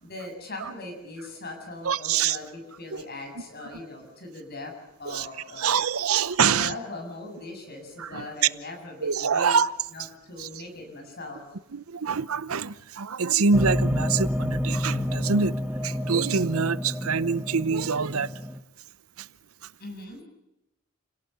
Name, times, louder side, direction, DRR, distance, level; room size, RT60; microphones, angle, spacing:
voice 1, 0.0-4.7 5.0-5.7 6.4-9.5 9.9-11.4 19.8-20.2, left 2 dB, 45° left, 7.4 m, -40 dB
voice 2, 1.8-2.4 2.9-3.0 5.1-5.3 5.6-6.7 8.0-8.3 9.0-9.7 10.4-10.5 11.7-18.3 19.2-19.3, right 5 dB, 90° right, 0.8 m, -25 dB
sound 1, 13.5-18.6, left 1 dB, 5° right, 1.1 m, -29 dB
29.5 x 18.0 x 6.9 m
head